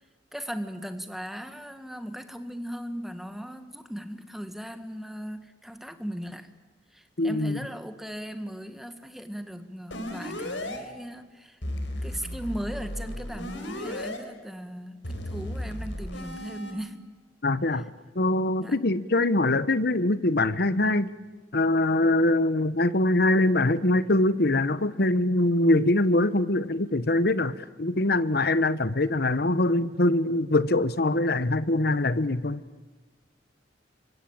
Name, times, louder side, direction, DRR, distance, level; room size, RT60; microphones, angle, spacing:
voice 1, 0.3-6.5 6.9-11.6 12.0-17.1 18.6-18.8, equal, ahead, 8 dB, 1.6 m, -38 dB
voice 2, 7.2-7.6 17.4-17.9 18.1-21.1 21.5-32.6, left 2 dB, 60° left, 15 dB, 1.1 m, -23 dB
sound 1, 9.9-10.8 11.6-14.2 15.0-16.7, left 1 dB, 90° left, 4.4 m, -35 dB
26.0 x 24.5 x 8.8 m, 1.3 s
head